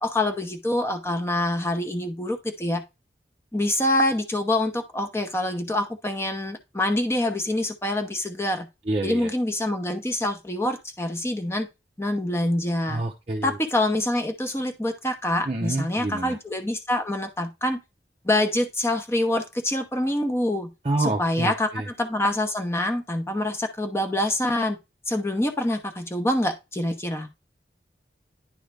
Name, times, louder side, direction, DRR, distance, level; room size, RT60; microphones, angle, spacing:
voice 1, 0.0-2.8 3.5-8.7 9.0-11.7 12.0-13.0 13.4-17.8 18.2-20.7 21.0-24.8 25.1-27.3, left 1 dB, 15° left, 6 dB, 0.9 m, -26 dB
voice 2, 8.9-9.3 12.9-13.6 15.5-16.4 20.8-21.9, right 2 dB, 35° right, 0 dB, 0.7 m, -28 dB
10.5 x 3.8 x 3.4 m, 0.24 s
head